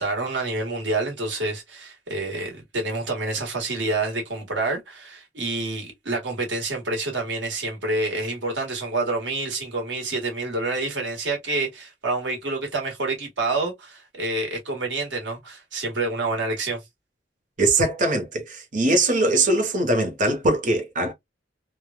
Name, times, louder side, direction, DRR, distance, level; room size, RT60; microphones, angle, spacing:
voice 1, 0.0-16.8, right 2 dB, 85° right, 1.5 m, -28 dB
voice 2, 17.6-21.1, right 2 dB, 50° right, 1.0 m, -21 dB
3.2 x 2.3 x 2.2 m
head